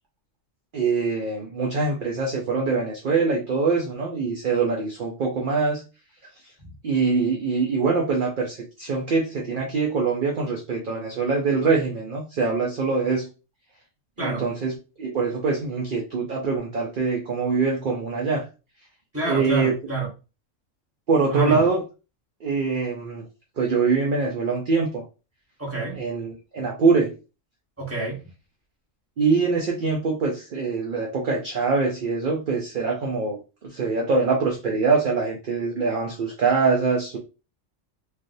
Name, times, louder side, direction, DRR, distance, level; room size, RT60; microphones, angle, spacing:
voice 1, 0.7-5.8 6.8-13.3 14.2-18.4 19.3-19.7 21.1-21.8 22.4-23.3 23.6-25.0 25.9-27.1 29.2-37.2, right 4 dB, 50° right, 0.6 m, -24 dB
voice 2, 19.1-20.1 21.3-21.6 25.6-26.0 27.8-28.2, right 3 dB, 10° right, 1.3 m, -27 dB
3.3 x 2.5 x 2.6 m
omnidirectional pair, 1.3 m